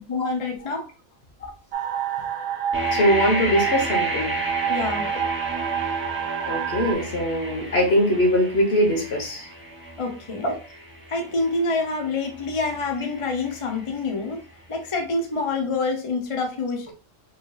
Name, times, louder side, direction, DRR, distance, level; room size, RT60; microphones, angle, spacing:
voice 1, 0.1-0.9 4.7-5.1 10.0-10.6 11.1-14.4 14.7-16.9, left 3 dB, 35° left, 2 dB, 0.5 m, -27 dB
sound 1, 1.7-6.9, right 9 dB, 75° right, 1.0 m, -27 dB
sound 2, 2.7-14.5, equal, 10° right, 0.6 m, -33 dB
voice 2, 2.9-4.4 6.4-9.4 10.4-10.5, equal, 55° left, 2 dB, 1.3 m, -21 dB
5.0 x 3.1 x 2.3 m, 0.36 s
omnidirectional pair, 1.3 m